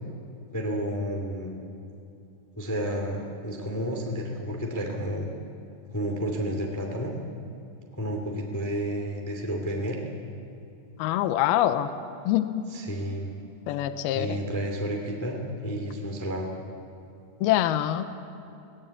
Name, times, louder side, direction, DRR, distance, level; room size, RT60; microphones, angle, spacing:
voice 1, 0.5-1.6 2.5-5.3 5.9-7.1 7.9-10.0 12.7-13.3 14.1-16.5, equal, 5° left, 1 dB, 1.5 m, -31 dB
voice 2, 11.0-11.9 12.3-12.6 13.7-14.4 17.4-18.0, left 13 dB, 80° left, 10 dB, 2.7 m, -24 dB
22.0 x 18.5 x 8.4 m, 2.7 s
omnidirectional pair, 4.5 m